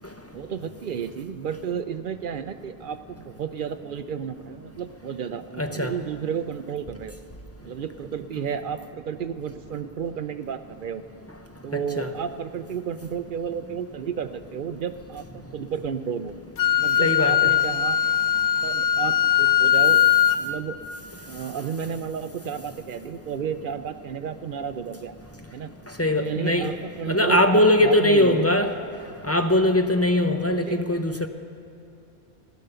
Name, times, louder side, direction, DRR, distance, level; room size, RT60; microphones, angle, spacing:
voice 1, 0.3-7.2 7.6-11.0 11.6-16.3 16.8-18.0 18.6-20.1 20.4-20.8 21.3-25.2 25.5-25.7 26.2-28.5 30.6-30.9, right 7 dB, 60° right, 11 dB, 0.6 m, -32 dB
voice 2, 5.6-5.9 12.0-12.1 17.0-17.5 26.0-26.7 27.1-28.7 29.2-31.3, left 1 dB, 20° left, 5 dB, 0.5 m, -21 dB
Wind instrument woodwind instrument, 16.6-20.4, left 10 dB, 55° left, 0.6 m, -20 dB
15.5 x 11.0 x 6.8 m, 2.9 s
omnidirectional pair, 1.1 m